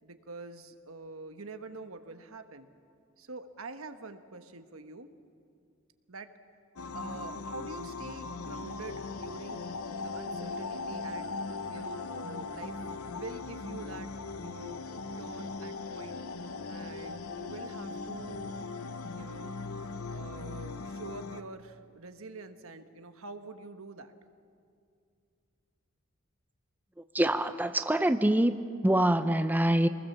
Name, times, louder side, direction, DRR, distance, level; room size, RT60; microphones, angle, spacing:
voice 1, 0.0-2.7 3.2-5.1 6.1-6.3 6.9-11.3 11.7-12.8 13.1-14.8 15.2-16.2 16.7-18.6 19.1-19.5 20.1-24.1, right 3 dB, 70° right, 8 dB, 1.4 m, -46 dB
sound 1, 6.8-21.4, left 4 dB, 75° left, 0.9 m, -39 dB
voice 2, 27.1-28.6 28.8-29.9, right 1 dB, 10° right, 9 dB, 0.6 m, -25 dB
26.5 x 20.0 x 7.3 m, 2.4 s
head